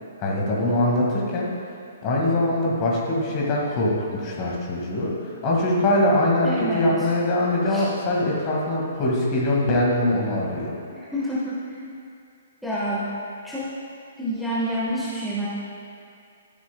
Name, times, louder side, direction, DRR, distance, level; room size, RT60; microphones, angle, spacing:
voice 1, 0.2-1.5 2.0-5.1 5.4-10.7, left 1 dB, 30° left, -3 dB, 1.9 m, -22 dB
voice 2, 6.4-6.8 7.7-7.8 11.0-12.0 12.6-13.1 13.4-13.7 14.2-15.5, equal, ahead, -10 dB, 1.3 m, -28 dB
12.5 x 7.3 x 2.3 m, 2.4 s
figure-of-eight pair, 120°, 0 cm